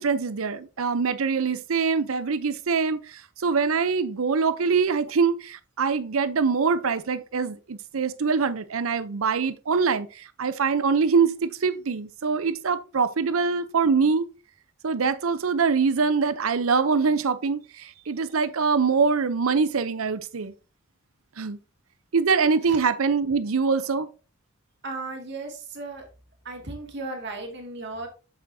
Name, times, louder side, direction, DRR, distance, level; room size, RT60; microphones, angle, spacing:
voice 1, 0.0-14.3 14.8-20.5 21.4-21.6 22.1-24.1, right 5 dB, 80° right, 0.7 m, -24 dB
voice 2, 24.8-26.1 26.4-28.1, right 3 dB, 55° right, 2.2 m, -35 dB
7.5 x 7.2 x 2.7 m
head